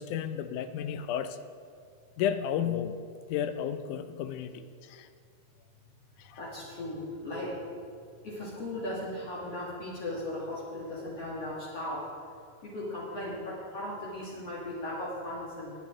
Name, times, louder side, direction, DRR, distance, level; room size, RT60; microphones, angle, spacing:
voice 1, 0.0-1.4 2.2-5.1 6.2-6.4, left 9 dB, 90° left, 10 dB, 2.2 m, -33 dB
voice 2, 6.4-7.7 8.2-12.2 12.6-15.7, left 1 dB, 55° left, -7 dB, 3.1 m, -37 dB
21.0 x 8.8 x 3.8 m, 2.3 s
omnidirectional pair, 3.5 m